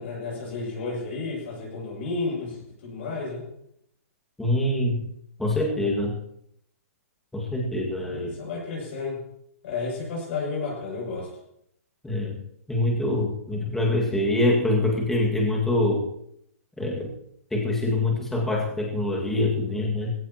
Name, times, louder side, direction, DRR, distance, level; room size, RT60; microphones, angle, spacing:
voice 1, 0.0-3.4 8.0-9.2 9.6-11.3, left 3 dB, 50° left, -3 dB, 7.6 m, -32 dB
voice 2, 4.4-5.0 5.4-6.1 7.3-8.3 12.0-12.4 12.7-16.0 16.8-17.1 17.5-20.1, left 1 dB, 5° left, -2 dB, 2.0 m, -24 dB
20.5 x 17.0 x 3.0 m, 0.72 s
hypercardioid pair, 165°, 8 cm